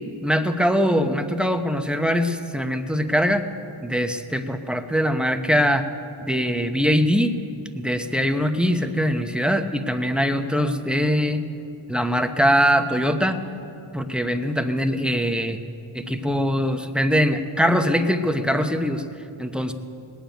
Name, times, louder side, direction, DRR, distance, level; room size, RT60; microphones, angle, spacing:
voice 1, 0.2-3.5 3.8-5.9 6.2-7.3 7.7-11.4 11.9-13.4 13.9-15.6 15.9-19.0 19.4-19.7, equal, ahead, 6 dB, 0.9 m, -22 dB
20.0 x 7.2 x 9.1 m, 2.7 s
wide cardioid pair, 40°, 50 cm